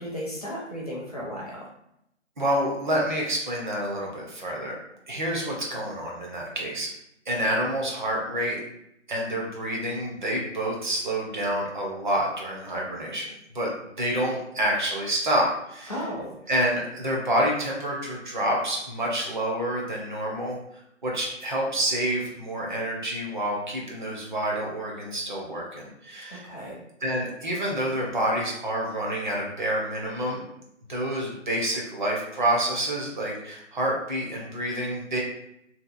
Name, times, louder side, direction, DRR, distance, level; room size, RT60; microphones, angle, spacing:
voice 1, 0.0-1.7 15.9-16.4 26.3-26.8, equal, 30° left, -5 dB, 0.5 m, -34 dB
voice 2, 2.4-4.8 5.1-6.9 7.3-8.6 9.1-13.7 14.0-15.9 16.5-20.6 21.0-26.5 27.0-30.4 30.9-35.2, right 1 dB, 40° right, -2 dB, 0.6 m, -28 dB
2.7 x 2.2 x 2.4 m, 0.78 s
figure-of-eight pair, 155°, 37 cm